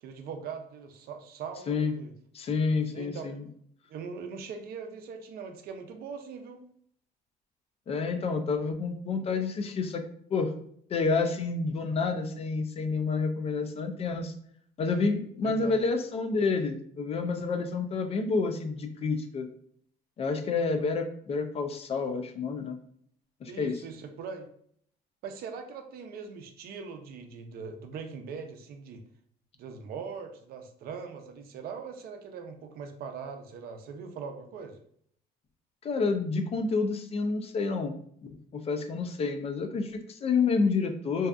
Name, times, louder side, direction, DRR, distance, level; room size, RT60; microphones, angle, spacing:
voice 1, 0.0-2.1 2.9-3.4 3.9-6.7 15.4-15.8 23.5-24.5 25.2-29.0 29.6-34.8, right 5 dB, 65° right, 5 dB, 0.5 m, -41 dB
voice 2, 2.3-3.4 7.9-10.0 10.3-10.5 10.9-14.3 14.8-19.5 20.2-22.8 23.4-23.8 35.8-37.9 38.5-41.3, left 4 dB, 35° left, 6 dB, 0.3 m, -29 dB
2.6 x 2.3 x 2.2 m, 0.64 s
cardioid pair, 110°, 17 cm